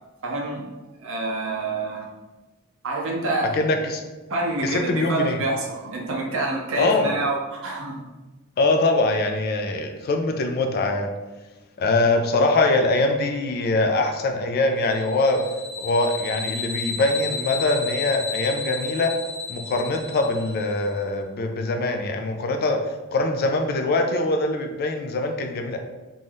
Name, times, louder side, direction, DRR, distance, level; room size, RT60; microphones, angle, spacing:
voice 1, 0.2-0.7 1.0-2.1 2.8-3.6 4.3-8.0, right 2 dB, 65° right, -1 dB, 0.7 m, -27 dB
voice 2, 3.5-4.0 4.6-5.4 6.7-7.1 8.6-11.1 11.8-15.4 15.8-19.1 19.5-22.8 23.1-25.8, left 2 dB, 45° left, 5 dB, 0.3 m, -23 dB
sound 1, 14.9-20.9, left 4 dB, 85° left, 0.8 m, -33 dB
2.6 x 2.2 x 3.3 m, 1.2 s
head